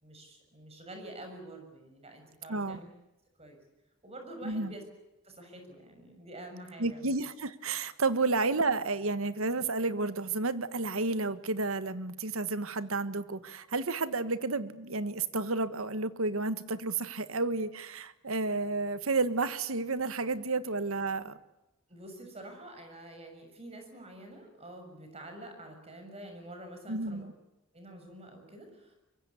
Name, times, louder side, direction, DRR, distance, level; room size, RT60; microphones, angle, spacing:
voice 1, 0.0-2.9 3.4-3.6 4.0-4.8 5.2-7.1 21.9-27.3 27.7-28.9, right 1 dB, 30° right, 5 dB, 6.5 m, -47 dB
voice 2, 2.5-2.8 4.4-4.7 6.8-21.4 26.9-27.3, right 3 dB, 80° right, 13 dB, 1.4 m, -31 dB
24.5 x 23.5 x 8.4 m, 0.97 s
head